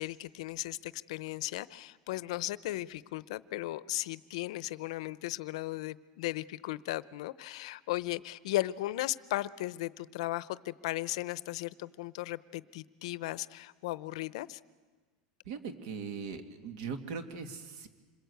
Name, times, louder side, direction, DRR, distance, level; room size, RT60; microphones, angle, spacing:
voice 1, 0.0-14.6, left 17 dB, 70° left, 18 dB, 0.7 m, -36 dB
voice 2, 15.5-17.9, right 5 dB, 55° right, 8 dB, 2.3 m, -40 dB
26.5 x 22.0 x 8.1 m, 1.4 s
supercardioid pair, 170°, 3 cm